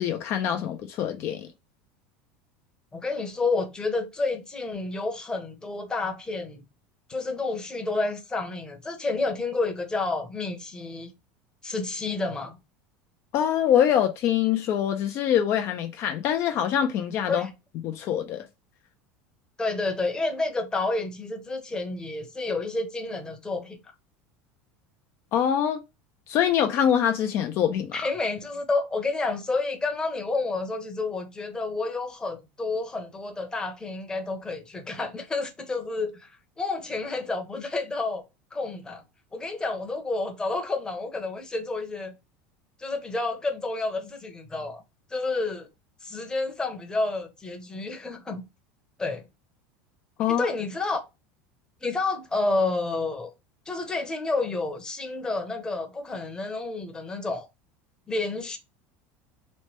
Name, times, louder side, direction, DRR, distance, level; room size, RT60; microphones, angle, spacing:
voice 1, 0.0-1.5 13.3-17.5 17.8-18.4 25.3-25.8 26.3-28.0 50.2-50.5, left 9 dB, 50° left, 0.4 m, -24 dB
voice 2, 2.9-6.6 7.1-11.1 11.6-12.6 17.3-17.5 19.6-23.8 27.9-36.3 36.6-38.2 38.5-39.0 39.3-42.1 42.8-44.8 45.1-45.7 46.0-48.4 49.0-49.2 50.3-51.0 51.8-53.3 53.7-57.5 58.1-58.6, left 3 dB, 15° left, 0.8 m, -30 dB
3.1 x 2.1 x 3.0 m
supercardioid pair, 125°, 6 cm